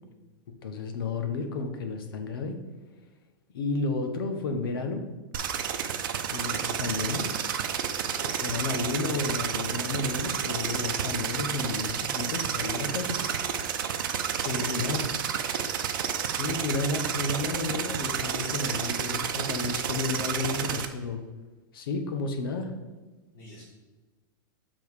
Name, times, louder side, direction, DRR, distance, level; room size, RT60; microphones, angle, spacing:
voice 1, 0.6-2.6 3.5-5.0 6.3-7.4 8.1-13.2 14.4-15.0 16.2-21.2 21.7-22.7, left 3 dB, 80° left, 6 dB, 1.0 m, -32 dB
sound 1, 5.3-20.9, right 8 dB, 70° right, 0.7 m, -30 dB
voice 2, 14.1-14.9 23.3-23.6, left 1 dB, 40° left, -7 dB, 2.0 m, -46 dB
6.9 x 3.8 x 4.7 m, 1.2 s
supercardioid pair, 155°, 12 cm